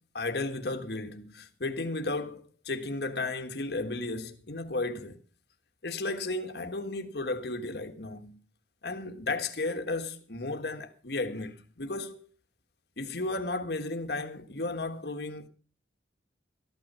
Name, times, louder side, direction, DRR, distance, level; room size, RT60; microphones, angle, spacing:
voice 1, 0.1-5.2 5.8-8.4 8.8-12.3 13.0-15.5, left 2 dB, 65° left, 1.4 m, -34 dB
14.0 x 11.5 x 5.5 m
head